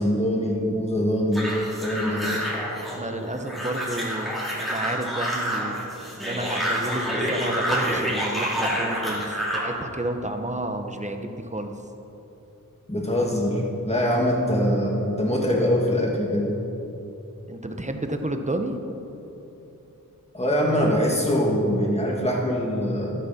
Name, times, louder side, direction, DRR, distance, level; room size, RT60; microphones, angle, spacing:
voice 1, 0.0-1.5 1.8-2.3 12.9-16.5 20.3-23.1, equal, 20° left, -2 dB, 2.4 m, -23 dB
sound 1, 1.3-9.7, equal, ahead, 3.2 m, -28 dB
voice 2, 2.9-5.7 6.2-11.7 17.5-18.7, right 1 dB, 20° right, 5 dB, 1.0 m, -31 dB
13.0 x 12.5 x 4.4 m, 3.0 s
wide cardioid pair, 65°, 33 cm